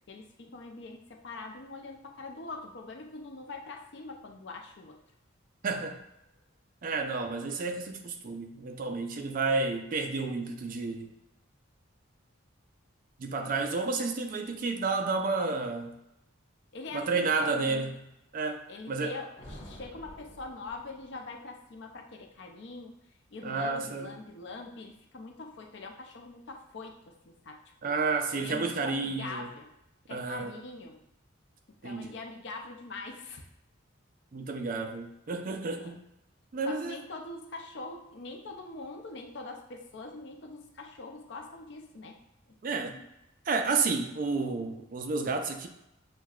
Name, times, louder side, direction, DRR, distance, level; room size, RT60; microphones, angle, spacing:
voice 1, 0.1-5.0 5.7-5.8 14.0-14.1 16.7-17.9 18.7-23.0 23.3-27.9 28.3-29.7 30.1-31.0 31.7-33.5 35.8-36.0 36.6-42.2 42.7-43.1, left 3 dB, 60° left, 3 dB, 0.5 m, -43 dB
voice 2, 5.6-6.0 6.8-11.1 13.2-15.9 16.9-17.9 18.3-19.1 23.4-24.1 27.8-29.5 30.1-30.6 31.8-32.1 34.3-36.0 36.5-37.0 42.6-43.0 43.5-45.7, right 4 dB, 45° right, 5 dB, 0.3 m, -31 dB
sound 1, 19.4-21.3, equal, 25° left, 1.0 m, -49 dB
6.3 x 2.2 x 2.3 m, 0.87 s
head